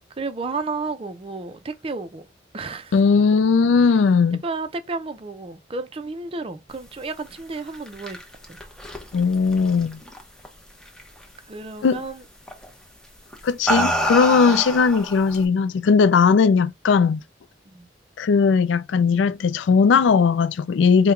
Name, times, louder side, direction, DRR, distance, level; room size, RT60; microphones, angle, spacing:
voice 1, 0.2-2.3 2.5-3.0 4.4-8.2 8.5-8.6 11.5-12.2 14.5-14.6 17.7-17.9, right 3 dB, 30° right, 0.5 m, -32 dB
voice 2, 2.9-4.4 9.1-10.0 11.8-12.1 13.4-17.2 18.2-21.1, left 5 dB, 70° left, 0.3 m, -18 dB
sound 1, 7.6-10.5 10.8-11.2 12.5-12.7 13.3-15.4, right 1 dB, 5° left, 0.7 m, -27 dB
4.5 x 2.2 x 3.6 m
head